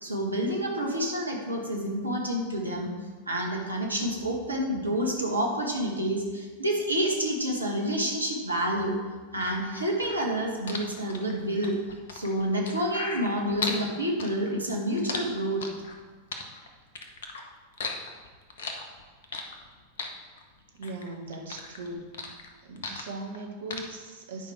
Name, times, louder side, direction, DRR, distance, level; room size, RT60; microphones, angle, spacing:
voice 1, 0.0-2.9 3.3-9.0 9.3-11.8 12.1-15.6, equal, 80° right, 0 dB, 1.6 m, -28 dB
sound 1, 9.4-13.8 14.2-16.0 16.3-17.4 17.7-19.7 20.0-21.1 21.3-23.4 23.7-23.8, left 4 dB, 65° left, 1.0 m, -36 dB
voice 2, 20.7-22.1 22.6-24.5, right 2 dB, 60° right, 2 dB, 1.4 m, -39 dB
10.0 x 5.2 x 4.6 m, 1.4 s
figure-of-eight pair, 90°, 0 cm